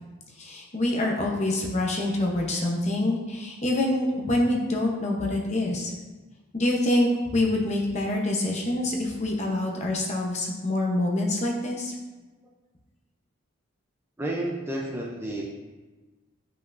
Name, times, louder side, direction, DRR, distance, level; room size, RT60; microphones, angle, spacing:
voice 1, 0.4-5.9 6.5-11.9, left 1 dB, 30° left, -1 dB, 0.9 m, -26 dB
voice 2, 14.2-15.4, right 1 dB, 10° right, -2 dB, 0.5 m, -31 dB
8.0 x 5.5 x 2.6 m, 1.2 s
head